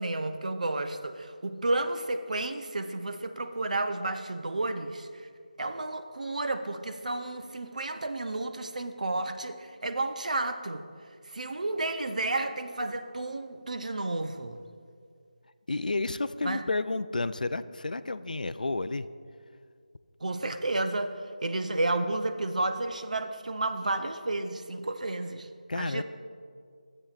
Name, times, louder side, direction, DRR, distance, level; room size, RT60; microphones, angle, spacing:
voice 1, 0.0-5.3 5.6-10.8 11.2-14.6 16.4-16.7 20.2-25.5 25.7-26.0, right 2 dB, 65° right, 8 dB, 0.5 m, -31 dB
voice 2, 15.7-19.1 25.7-26.0, left 3 dB, 80° left, 13 dB, 0.3 m, -31 dB
13.5 x 7.6 x 2.4 m, 2.2 s
figure-of-eight pair, 165°, 4 cm